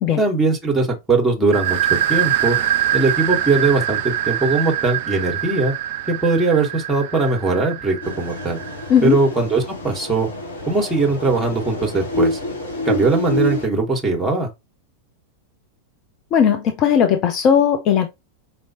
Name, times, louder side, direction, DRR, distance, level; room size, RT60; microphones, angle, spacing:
voice 1, 0.2-1.8 2.1-2.6 2.9-5.7 6.1-8.6 9.0-10.3 10.7-12.4 12.8-14.5, right 3 dB, 10° right, 1.5 m, -20 dB
sound 1, 1.5-9.0, right 11 dB, 50° right, 0.4 m, -24 dB
sound 2, 8.0-13.7, equal, 75° left, 2.2 m, -27 dB
voice 2, 16.3-18.1, left 8 dB, 35° left, 0.7 m, -16 dB
5.3 x 2.9 x 2.8 m
figure-of-eight pair, 90°, 0 cm